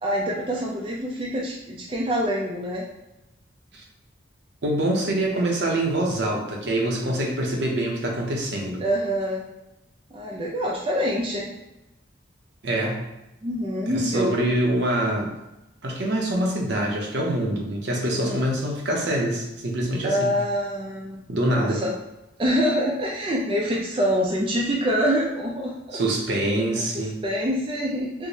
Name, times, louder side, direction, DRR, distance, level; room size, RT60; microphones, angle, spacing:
voice 1, 0.0-2.9 8.8-9.4 10.1-11.5 13.4-14.3 18.1-18.4 20.0-21.2 21.5-21.9 22.4-26.0 26.8-28.3, equal, 25° right, -3 dB, 0.4 m, -25 dB
voice 2, 4.6-8.8 12.6-13.0 13.9-15.3 15.8-20.3 21.3-21.8 25.9-27.2, right 1 dB, 65° right, 0 dB, 0.7 m, -25 dB
4.6 x 2.1 x 2.7 m, 0.94 s
head